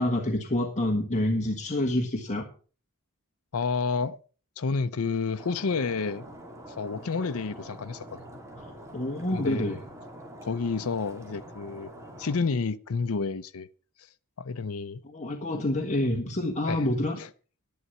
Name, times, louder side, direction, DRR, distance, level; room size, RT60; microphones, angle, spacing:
voice 1, 0.0-2.5 8.6-9.8 15.0-17.2, left 1 dB, 35° left, 1.5 m, -28 dB
voice 2, 3.5-4.2 4.6-6.3 6.7-8.2 9.3-9.7 10.4-11.9 12.2-13.7 14.4-15.0 16.6-16.9 17.2-17.3, left 4 dB, 75° left, 0.6 m, -30 dB
Stream, 5.4-12.4, right 1 dB, 15° right, 3.0 m, -45 dB
11.0 x 11.0 x 5.5 m
head